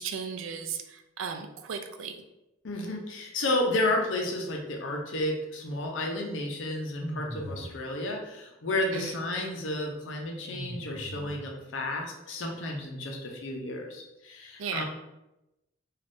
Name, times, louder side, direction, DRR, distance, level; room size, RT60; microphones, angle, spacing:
voice 1, 0.0-2.2 8.9-9.1 14.6-14.8, right 6 dB, 80° right, 5 dB, 0.4 m, -35 dB
voice 2, 2.6-14.8, left 1 dB, 70° left, 1 dB, 0.5 m, -32 dB
sound 1, 7.0-7.9 10.5-11.7, right 1 dB, ahead, 1.2 m, -39 dB
2.5 x 2.4 x 3.4 m, 0.94 s
head